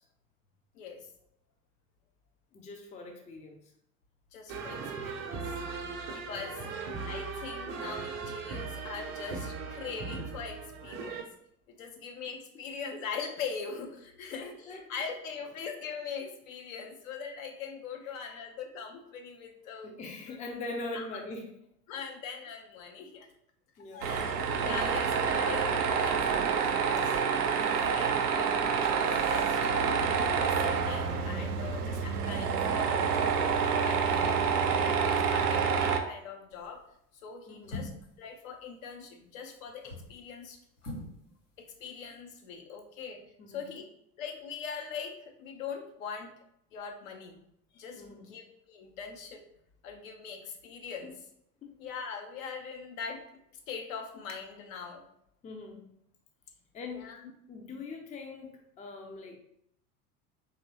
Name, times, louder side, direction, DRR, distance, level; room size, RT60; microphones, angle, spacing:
voice 1, 0.7-1.1 4.3-5.4 6.1-6.6 7.0-11.3 11.7-19.9 20.3-20.4 20.9-21.1 21.9-23.3 23.9-29.6 30.3-33.4 33.8-36.8 37.2-37.9 38.2-40.6 41.6-43.8 44.2-46.3 46.7-47.4 47.7-49.4 49.8-51.1 51.8-53.2 53.7-55.0 56.9-57.2, left 6 dB, 60° left, 3 dB, 0.8 m, -42 dB
voice 2, 2.5-3.7 6.3-6.8 14.4-14.9 18.1-18.4 19.8-21.6 23.8-24.3 24.7-24.8 34.2-34.4 37.5-37.8 43.4-43.6 48.0-48.3 51.0-51.1 51.6-51.7 55.4-55.9 56.7-57.1 57.5-59.4, left 2 dB, 15° left, 2 dB, 0.5 m, -43 dB
sound 1, 4.5-11.2, right 4 dB, 35° right, 0.6 m, -38 dB
Tools, 24.0-36.0, right 6 dB, 80° right, 0.6 m, -28 dB
sound 2, 36.5-36.8 37.6-38.2 39.7-40.2 40.8-41.2 41.4-41.5, left 1 dB, 75° left, 1.5 m, -41 dB
4.1 x 3.0 x 2.7 m, 0.74 s
figure-of-eight pair, 75°, 46 cm